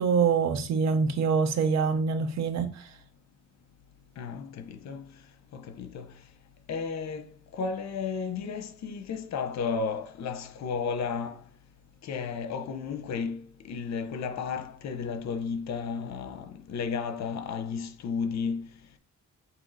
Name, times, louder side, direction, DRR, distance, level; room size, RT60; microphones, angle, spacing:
voice 1, 0.0-2.9, right 5 dB, 60° right, 0.8 m, -25 dB
voice 2, 4.2-5.0 5.5-6.1 6.7-7.2 7.5-11.4 12.0-13.4 13.7-18.6, left 5 dB, 60° left, 0.8 m, -33 dB
4.6 x 2.8 x 3.9 m
cardioid pair, 90°, 30 cm